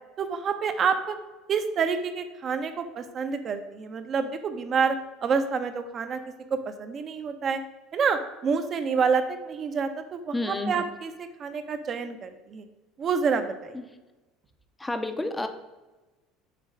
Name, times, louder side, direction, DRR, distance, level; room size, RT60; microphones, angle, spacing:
voice 1, 0.2-1.2 1.5-6.2 6.5-7.6 7.9-12.6 13.0-13.8, right 5 dB, 40° right, 8 dB, 0.8 m, -28 dB
voice 2, 10.3-10.8 13.7-13.8 14.8-15.5, left 2 dB, 10° left, 7 dB, 0.7 m, -30 dB
7.6 x 3.1 x 5.4 m, 1.1 s
supercardioid pair, 110°, 0 cm